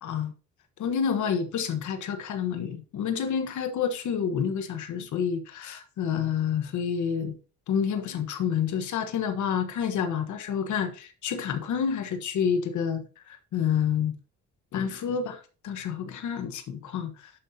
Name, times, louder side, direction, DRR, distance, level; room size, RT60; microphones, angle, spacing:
voice 1, 0.0-0.3 0.8-7.3 7.7-14.1 14.7-17.3, left 7 dB, 75° left, 1.3 m, -29 dB
11.0 x 5.4 x 2.8 m
cardioid pair, 90°, 30 cm